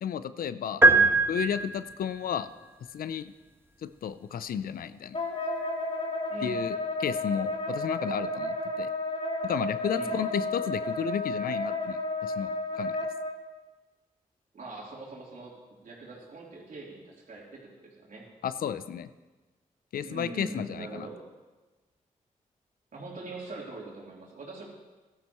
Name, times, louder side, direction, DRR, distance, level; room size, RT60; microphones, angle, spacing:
voice 1, 0.0-0.8 1.3-2.5 2.9-3.3 3.8-5.2 6.4-8.9 9.4-12.9 18.4-19.1 19.9-21.1, left 8 dB, 75° left, 14 dB, 0.5 m, -33 dB
sound 1, 0.8-2.1, right 3 dB, 15° right, 1.4 m, -21 dB
voice 2, 0.8-1.3 6.3-6.7 9.9-10.2 14.5-15.5 15.8-18.3 20.0-21.2 22.9-24.7, right 3 dB, 65° right, -4 dB, 3.6 m, -42 dB
Wind instrument woodwind instrument, 5.1-13.3, left 2 dB, 45° left, 3.0 m, -32 dB
16.0 x 12.5 x 3.1 m, 1.2 s
supercardioid pair, 45°, 15 cm